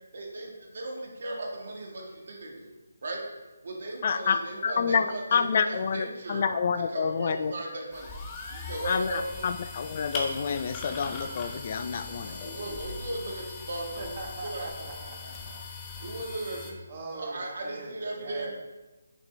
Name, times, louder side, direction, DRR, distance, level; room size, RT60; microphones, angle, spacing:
voice 1, 0.1-2.7 3.0-3.2 3.6-6.4 6.9-8.1 8.5-9.5 12.2-14.1 14.4-14.7 16.0-16.8 17.1-18.5, right 2 dB, 60° right, -1 dB, 1.7 m, -37 dB
voice 2, 4.0-4.4 4.6-7.5 8.8-12.6, left 6 dB, 45° left, 10 dB, 0.3 m, -28 dB
sound 1, 7.9-16.7, left 3 dB, 20° left, 0.9 m, -40 dB
voice 3, 14.0-15.6 16.9-18.5, right 3 dB, 35° right, -1 dB, 1.3 m, -41 dB
6.0 x 5.9 x 3.3 m, 1.1 s
figure-of-eight pair, 150°, 0 cm